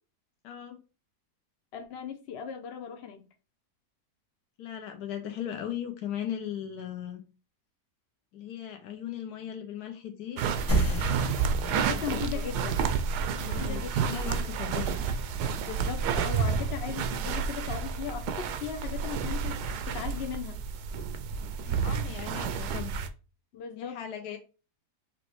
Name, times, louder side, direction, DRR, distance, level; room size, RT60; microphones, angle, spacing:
voice 1, 0.4-0.8 4.6-7.2 8.3-10.4 11.7-12.0 12.5-12.6 13.5-15.0 21.7-23.0 23.8-24.4, left 10 dB, 75° left, 1.2 m, -38 dB
voice 2, 1.7-3.3 11.7-12.8 13.4-13.9 14.2-14.6 15.6-20.6 23.5-24.0, left 8 dB, 60° left, 0.7 m, -38 dB
sound 1, 10.4-23.1, right 6 dB, 80° right, 1.2 m, -30 dB
sound 2, 10.7-15.8, right 1 dB, 10° left, 1.1 m, -33 dB
5.1 x 3.0 x 3.1 m
omnidirectional pair, 1.7 m